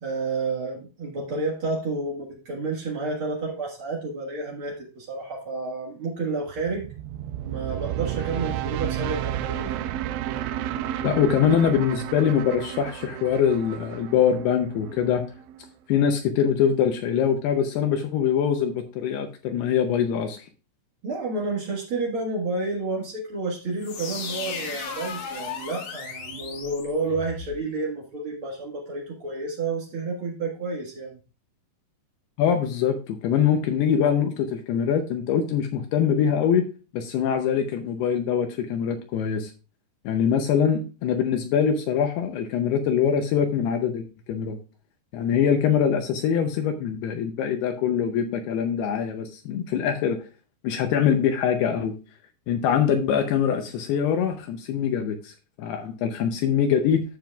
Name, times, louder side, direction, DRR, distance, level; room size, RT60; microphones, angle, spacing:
voice 1, 0.0-6.9 7.5-9.8 21.0-31.2, right 3 dB, 70° right, -3 dB, 1.2 m, -30 dB
sound 1, 6.6-15.7, right 12 dB, 85° right, 2.8 m, -32 dB
voice 2, 11.0-15.2 15.9-20.5 32.4-36.7 36.9-39.5 40.1-44.6 45.1-50.2 50.6-51.9 52.5-57.0, left 8 dB, 75° left, 6 dB, 2.6 m, -23 dB
sound 2, 23.8-27.6, left 5 dB, 55° left, 2.2 m, -35 dB
11.5 x 7.6 x 2.3 m, 0.32 s
omnidirectional pair, 5.1 m